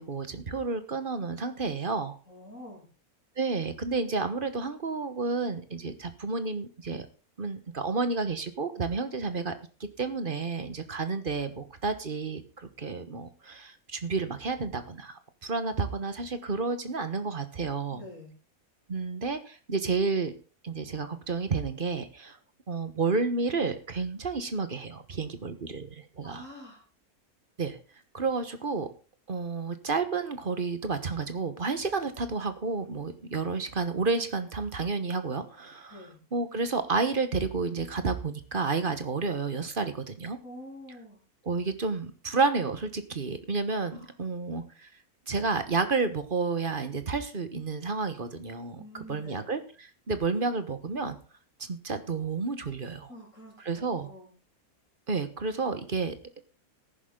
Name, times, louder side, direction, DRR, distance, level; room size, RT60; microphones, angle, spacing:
voice 1, 0.0-2.2 3.4-7.0 7.4-9.5 9.8-18.0 18.9-20.3 20.6-22.4 22.7-26.4 27.6-27.8 28.1-28.9 29.3-40.4 41.4-44.9 45.3-48.8 49.1-51.2 51.7-53.1 53.6-54.1 55.1-56.1, right 4 dB, 35° right, 10 dB, 1.3 m, -31 dB
voice 2, 2.3-2.8 17.9-18.3 26.2-26.8 35.9-36.2 40.4-41.2 43.9-44.1 48.8-49.4 53.1-54.3, left 1 dB, 55° left, -2 dB, 7.1 m, -46 dB
14.0 x 11.0 x 3.8 m, 0.34 s
omnidirectional pair, 1.6 m